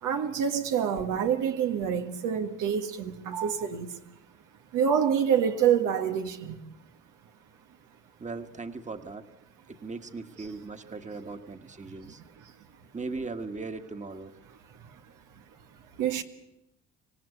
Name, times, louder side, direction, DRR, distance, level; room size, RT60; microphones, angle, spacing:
voice 1, 0.0-4.0 4.7-6.6 16.0-16.2, right 8 dB, 90° right, 1.7 m, -27 dB
voice 2, 8.2-9.3 9.7-12.2 12.9-14.3, right 3 dB, 25° right, 1.5 m, -38 dB
26.0 x 18.0 x 8.4 m
cardioid pair, 90°, 30 cm